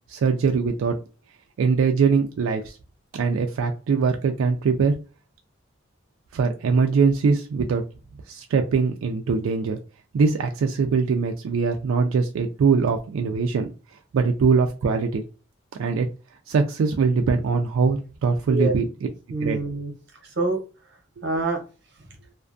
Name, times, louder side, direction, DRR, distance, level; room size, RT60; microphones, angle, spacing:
voice 1, 0.1-1.0 1.6-2.8 3.1-4.9 6.3-7.8 8.3-9.8 10.1-13.7 14.1-15.2 15.8-16.1 16.5-18.8 19.4-19.6, right 5 dB, 90° right, 4 dB, 0.3 m, -22 dB
voice 2, 19.3-20.6 21.2-21.6 22.0-22.1, right 2 dB, 55° right, 3 dB, 0.8 m, -26 dB
2.5 x 2.3 x 2.4 m, 0.33 s
head